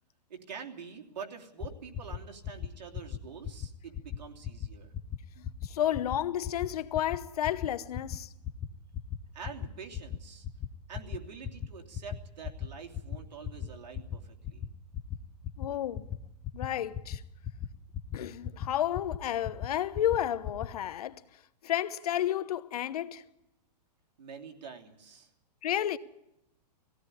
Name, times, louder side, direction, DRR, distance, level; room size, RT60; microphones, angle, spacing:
voice 1, 0.3-4.9 9.3-10.5 10.9-14.6 24.2-25.3, right 6 dB, 85° right, 3.2 m, -46 dB
sound 1, 1.6-1.7 1.9-2.2 2.4-2.7 2.9-3.2 3.4-3.7 3.9-4.2 4.4-4.7 4.9-5.2 5.4-5.7 5.9-6.2 6.4-6.7 6.9-7.2 7.4-7.7 7.9-8.2 8.4-8.7 8.9-9.2 9.4-9.7 9.9-10.2 10.4-10.7 10.9-11.2 11.4-11.7 11.9-12.2 12.4-12.7 12.9-13.2 13.4-13.7 13.9-14.2 14.4-14.7 14.9-15.2 15.4-15.7 15.9-16.2 16.4-16.7 16.9-17.2 17.4-17.7 17.9-18.2 18.4-18.7 18.9-19.2 19.4-19.7 19.9-20.2 20.4-20.7, left 10 dB, 15° left, 0.7 m, -36 dB
voice 2, 5.4-8.3 15.6-16.1 16.5-17.2 18.1-21.2 21.6-23.2 25.6-26.0, left 11 dB, 65° left, 1.0 m, -31 dB
19.0 x 16.5 x 9.8 m
hypercardioid pair, 160°, 21 cm